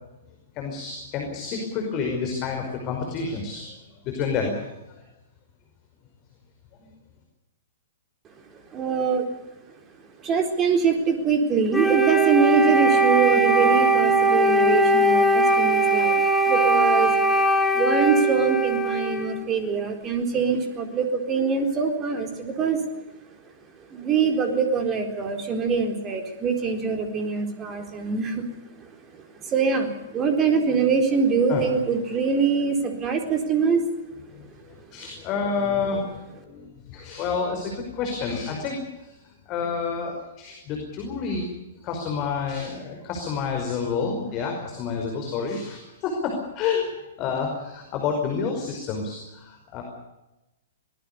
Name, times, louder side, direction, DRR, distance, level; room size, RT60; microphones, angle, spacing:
voice 1, 0.6-3.8 4.0-5.0 6.7-6.9 31.5-31.6 34.3-39.1 39.5-41.5 41.8-46.9 47.2-49.8, left 5 dB, 30° left, 2 dB, 5.2 m, -29 dB
voice 2, 8.5-9.3 10.2-17.1 17.7-22.8 23.9-28.4 28.8-33.8, right 5 dB, 25° right, 5 dB, 4.1 m, -24 dB
Wind instrument woodwind instrument, 11.7-19.4, right 2 dB, 5° left, 2.6 m, -20 dB
24.0 x 19.5 x 6.9 m, 0.95 s
figure-of-eight pair, 110°, 0 cm